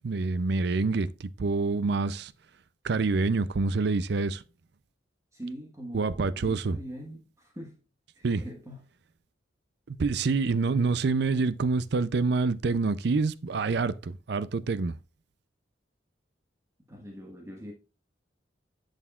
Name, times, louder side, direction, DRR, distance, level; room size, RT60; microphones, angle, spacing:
voice 1, 0.0-2.3 2.8-4.4 5.9-6.8 8.2-8.4 9.9-15.0, right 4 dB, 60° right, 0.5 m, -27 dB
voice 2, 5.3-7.3 7.6-7.7 8.2-8.8 16.9-17.7, equal, 15° right, 1.3 m, -42 dB
11.0 x 6.5 x 2.4 m
head